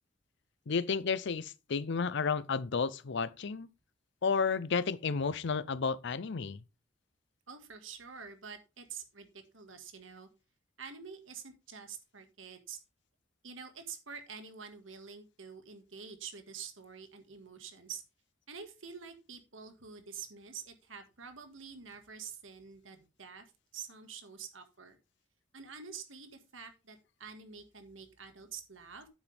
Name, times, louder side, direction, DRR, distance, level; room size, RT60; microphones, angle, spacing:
voice 1, 0.7-3.7 4.2-6.6, left 5 dB, 65° left, 0.6 m, -32 dB
voice 2, 7.5-10.3 10.8-12.8 13.4-18.0 18.5-25.0 25.5-29.1, right 6 dB, 80° right, 1.8 m, -47 dB
8.8 x 8.0 x 3.4 m
head